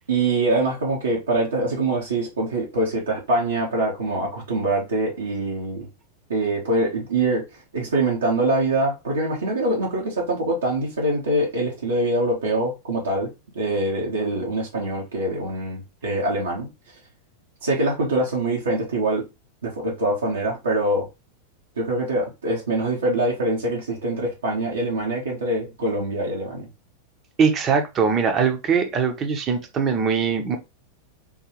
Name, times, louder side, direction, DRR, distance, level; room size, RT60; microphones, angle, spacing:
voice 1, 0.1-5.9 6.3-7.4 7.7-13.3 13.5-16.7 17.6-19.3 19.6-21.1 21.8-26.7, right 2 dB, 70° right, 1.1 m, -24 dB
voice 2, 27.4-30.6, right 6 dB, 30° right, 0.8 m, -21 dB
3.8 x 2.7 x 3.0 m
figure-of-eight pair, 90°, 0 cm